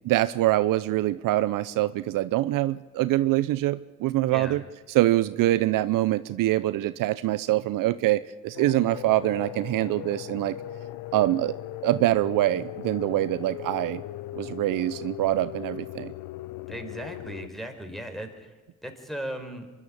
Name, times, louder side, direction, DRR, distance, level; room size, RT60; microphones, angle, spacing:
voice 1, 0.0-4.6 4.9-10.5 11.1-11.6 11.8-14.0 14.4-16.1, right 15 dB, 70° right, 15 dB, 0.7 m, -24 dB
sound 1, 8.5-17.5, left 15 dB, 75° left, 0.7 m, -38 dB
voice 2, 16.7-18.5 18.8-19.7, right 1 dB, ahead, 6 dB, 4.5 m, -37 dB
25.0 x 12.0 x 8.7 m, 1.3 s
hypercardioid pair, 50°, 33 cm